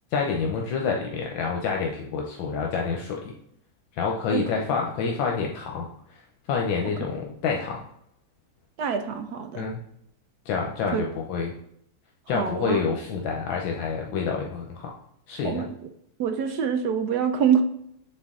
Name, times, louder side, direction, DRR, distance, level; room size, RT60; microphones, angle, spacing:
voice 1, 0.1-3.3 4.0-5.9 6.5-7.8 9.5-9.8 10.5-11.5 12.3-14.9 15.3-15.7, left 5 dB, 80° left, 0 dB, 1.4 m, -27 dB
voice 2, 8.8-9.6 10.9-11.0 12.3-12.8 15.4-15.7 16.2-17.6, right 7 dB, 70° right, 7 dB, 1.0 m, -25 dB
7.3 x 4.4 x 3.6 m, 0.75 s
omnidirectional pair, 2.1 m